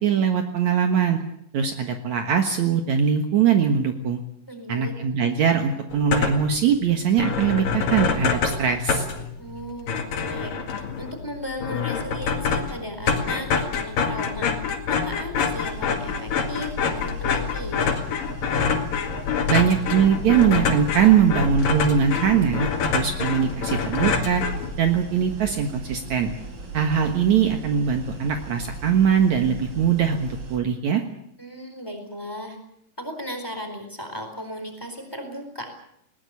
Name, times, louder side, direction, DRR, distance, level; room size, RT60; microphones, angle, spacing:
voice 1, 0.0-1.2 1.5-4.2 4.7-9.1 19.5-24.4 24.8-26.3 26.7-31.0, right 7 dB, 60° right, 5 dB, 2.6 m, -21 dB
voice 2, 4.5-4.9 9.4-14.5 14.9-18.0 31.4-32.6 33.0-35.7, equal, 5° left, 5 dB, 3.9 m, -36 dB
sound 1, 5.9-6.6 6.9-7.0 7.2-25.0, left 6 dB, 75° left, 3.7 m, -26 dB
sound 2, 15.5-30.6, right 3 dB, 35° right, 4.4 m, -38 dB
21.0 x 19.0 x 8.4 m, 0.74 s
omnidirectional pair, 4.0 m